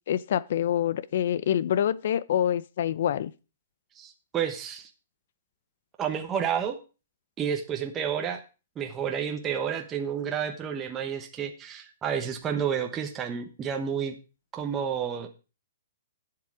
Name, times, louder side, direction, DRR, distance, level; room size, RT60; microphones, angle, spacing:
voice 1, 0.1-3.3, left 10 dB, 55° left, 0.6 m, -26 dB
voice 2, 3.9-4.9 6.0-6.8 7.4-8.4 8.8-14.1 14.5-15.3, right 8 dB, 15° right, 1.1 m, -30 dB
11.5 x 7.8 x 4.8 m
hypercardioid pair, 155°, 0 cm